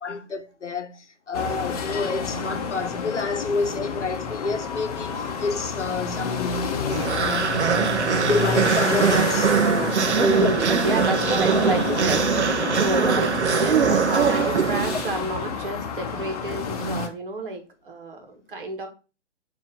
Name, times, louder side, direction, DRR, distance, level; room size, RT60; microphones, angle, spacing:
voice 1, 0.0-7.8 8.2-10.0 10.2-10.5 12.8-13.1, left 3 dB, 80° left, 0.8 m, -29 dB
sound 1, 1.3-17.1, left 6 dB, 35° left, 0.8 m, -30 dB
sound 2, 6.9-15.4, right 6 dB, 70° right, 0.6 m, -22 dB
voice 2, 10.2-18.9, right 2 dB, 50° right, 1.5 m, -30 dB
7.0 x 2.9 x 5.3 m
figure-of-eight pair, 125°, 35 cm